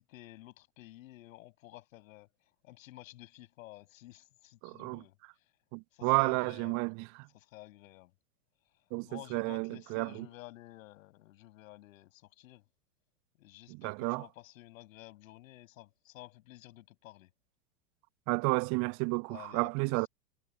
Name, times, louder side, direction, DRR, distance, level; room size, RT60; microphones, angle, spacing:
voice 1, 0.0-2.3 2.6-5.2 5.9-6.9 7.3-8.1 9.0-12.6 13.4-17.3 19.3-20.1, left 17 dB, 50° left, 6.7 m, -52 dB
voice 2, 4.6-5.0 5.7-7.3 8.9-10.3 13.7-14.3 18.3-20.1, right 32 dB, 35° right, 1.2 m, -31 dB
figure-of-eight pair, 95°, 50 cm